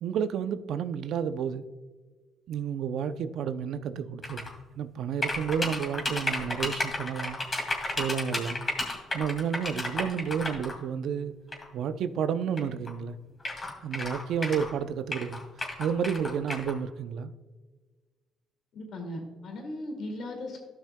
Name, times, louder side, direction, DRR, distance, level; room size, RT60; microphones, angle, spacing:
voice 1, 0.0-1.6 2.5-7.4 7.9-8.6 9.1-11.3 11.7-13.2 13.8-15.4 15.8-17.3, right 7 dB, 70° right, 0.5 m, -31 dB
sound 1, 4.2-4.5 5.2-10.7 11.5-11.6 12.6-12.7 12.9-13.0 13.4-14.7 15.1-16.7, left 2 dB, 30° left, 2.2 m, -32 dB
voice 2, 18.7-20.6, left 1 dB, 65° left, 2.2 m, -37 dB
13.5 x 5.8 x 2.2 m
supercardioid pair, 70°, 0 cm